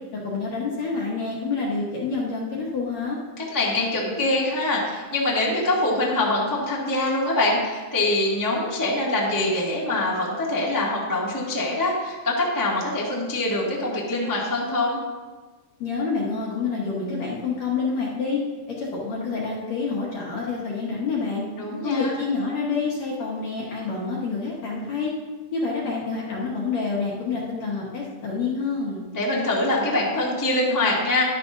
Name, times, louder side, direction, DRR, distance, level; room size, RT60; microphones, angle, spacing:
voice 1, 0.1-3.2 15.8-21.4 21.8-25.1 25.5-29.0, left 4 dB, 60° left, -4 dB, 1.9 m, -28 dB
voice 2, 3.4-15.0 21.6-22.1 29.1-31.2, left 2 dB, 15° left, -5 dB, 0.6 m, -24 dB
12.5 x 11.5 x 2.7 m, 1.3 s
omnidirectional pair, 4.7 m